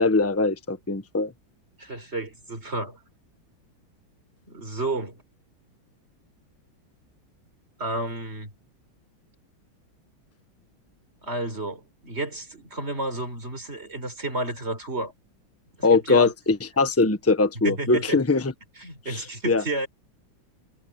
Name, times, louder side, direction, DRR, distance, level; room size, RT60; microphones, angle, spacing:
voice 1, 0.0-1.3 15.8-18.5 19.1-19.6, left 3 dB, 10° left, 1.1 m, -22 dB
voice 2, 1.8-3.0 4.5-5.2 7.8-8.5 11.2-15.1 15.9-16.3 17.6-18.2 18.8-19.9, right 2 dB, 30° right, 5.1 m, -31 dB
omnidirectional pair, 2.1 m